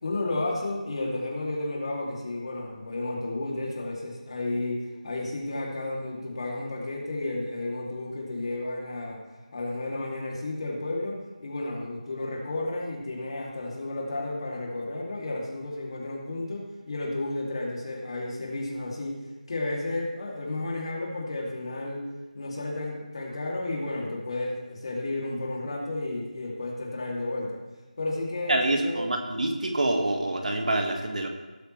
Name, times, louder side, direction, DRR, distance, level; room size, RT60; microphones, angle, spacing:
voice 1, 0.0-9.2 9.5-19.2 19.5-22.1 22.3-27.6 28.0-29.0, left 2 dB, 40° left, -2 dB, 2.7 m, -32 dB
voice 2, 28.5-31.3, right 2 dB, 60° right, 3 dB, 1.8 m, -26 dB
18.0 x 8.5 x 3.2 m, 1.2 s
figure-of-eight pair, 165°, 5 cm